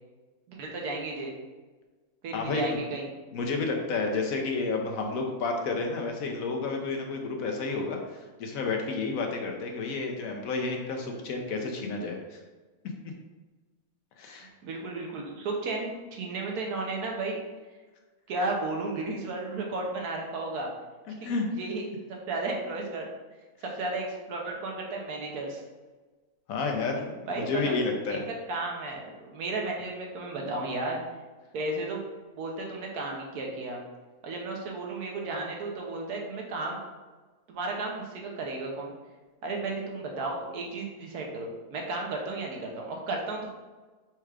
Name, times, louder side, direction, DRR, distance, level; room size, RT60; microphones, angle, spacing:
voice 1, 0.5-1.3 2.2-3.1 14.3-17.4 18.3-20.7 21.2-21.3 21.6-23.1 23.6-25.6 27.3-27.8 28.1-31.0 31.5-32.0 32.4-33.8 34.2-36.8 37.5-38.9 39.4-43.5, right 2 dB, 80° right, 0 dB, 1.3 m, -33 dB
voice 2, 2.3-2.8 3.3-12.4 14.2-14.5 21.2-21.5 26.5-28.3, left 3 dB, 70° left, 2 dB, 1.0 m, -31 dB
4.4 x 2.4 x 4.6 m, 1.3 s
omnidirectional pair, 1.6 m